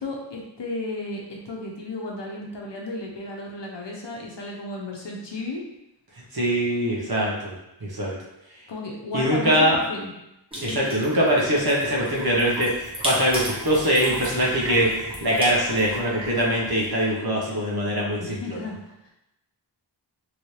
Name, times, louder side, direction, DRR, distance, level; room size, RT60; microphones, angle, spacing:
voice 1, 0.0-5.6 8.7-10.1 10.6-10.8 18.2-18.8 19.1-19.2, left 2 dB, 70° left, -1 dB, 0.8 m, -33 dB
voice 2, 6.3-7.5 7.8-8.1 9.1-9.8 10.6-18.6, equal, 55° right, -3 dB, 1.0 m, -23 dB
sound 1, 10.5-17.1, equal, 10° right, 1.2 m, -34 dB
3.0 x 2.7 x 3.2 m, 0.88 s
wide cardioid pair, 70°, 45 cm